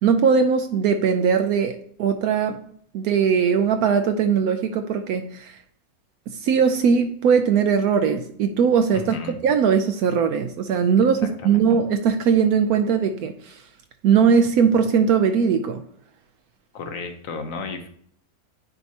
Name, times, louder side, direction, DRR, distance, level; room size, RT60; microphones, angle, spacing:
voice 1, 0.0-2.6 2.9-5.6 6.3-9.2 9.4-13.6 14.0-15.8, right 6 dB, 75° right, 1.1 m, -20 dB
voice 2, 8.9-9.4 11.4-11.6 16.7-17.9, left 4 dB, 65° left, 1.2 m, -33 dB
9.4 x 4.5 x 2.8 m
omnidirectional pair, 1.6 m